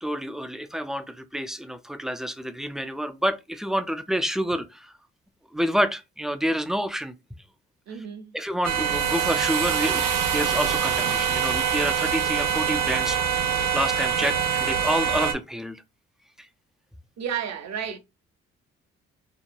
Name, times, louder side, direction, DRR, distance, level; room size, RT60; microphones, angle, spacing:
voice 1, 0.0-4.9 5.5-7.1 8.3-15.8, equal, ahead, 0.3 m, -28 dB
voice 2, 7.9-8.3 14.2-14.4 17.2-18.0, right 8 dB, 55° right, 0.8 m, -32 dB
sound 1, 8.6-15.3, right 8 dB, 85° right, 0.5 m, -24 dB
2.9 x 2.1 x 2.5 m
supercardioid pair, 55°, 32 cm